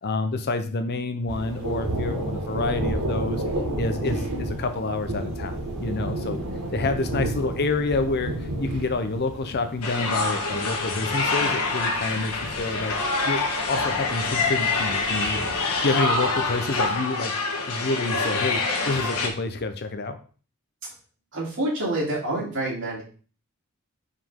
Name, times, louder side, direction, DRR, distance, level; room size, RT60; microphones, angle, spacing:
voice 1, 0.0-3.4 3.7-6.4 6.7-12.9 13.3-13.4 13.7-17.3 17.6-18.6 18.9-20.2, left 3 dB, 45° left, 8 dB, 0.7 m, -28 dB
Thunder, 1.3-16.8, right 1 dB, 90° right, 1.6 m, -32 dB
sound 1, 9.8-19.3, left 3 dB, 80° left, 1.5 m, -26 dB
voice 2, 21.3-23.0, right 1 dB, 55° right, -5 dB, 3.0 m, -27 dB
5.6 x 5.0 x 3.6 m, 0.39 s
head